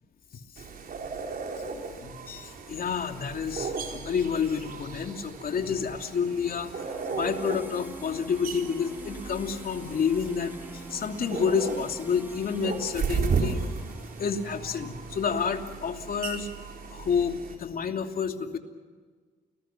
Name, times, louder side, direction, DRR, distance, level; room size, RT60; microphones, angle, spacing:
sound 1, 0.6-17.6, right 5 dB, 60° right, 4.3 m, -35 dB
voice 1, 1.9-13.6 14.2-16.5 16.9-18.6, left 6 dB, 60° left, 4 dB, 2.9 m, -29 dB
sound 2, 2.5-15.5, right 2 dB, 10° right, 4.3 m, -47 dB
30.0 x 21.0 x 6.1 m, 1.5 s
cardioid pair, 70°, 17 cm